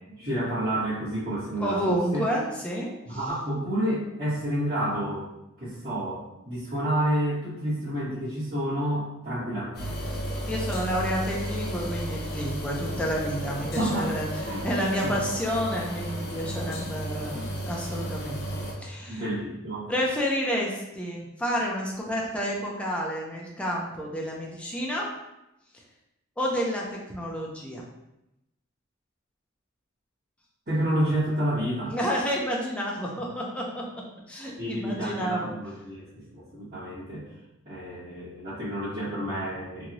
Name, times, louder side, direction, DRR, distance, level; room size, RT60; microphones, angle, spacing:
voice 1, 0.2-2.3 3.0-5.3 5.6-10.0 13.6-14.1 14.4-15.2 19.1-19.9 30.7-32.0 34.6-37.2 37.6-39.9, right 1 dB, 45° right, -17 dB, 1.5 m, -29 dB
voice 2, 1.6-3.2 10.5-18.4 18.8-19.2 19.9-25.1 26.4-27.8 31.9-33.8 34.3-35.5, equal, 5° left, -3 dB, 0.5 m, -30 dB
sound 1, 9.7-18.7, equal, 50° left, 0.7 m, -33 dB
3.0 x 2.7 x 2.6 m, 0.91 s
head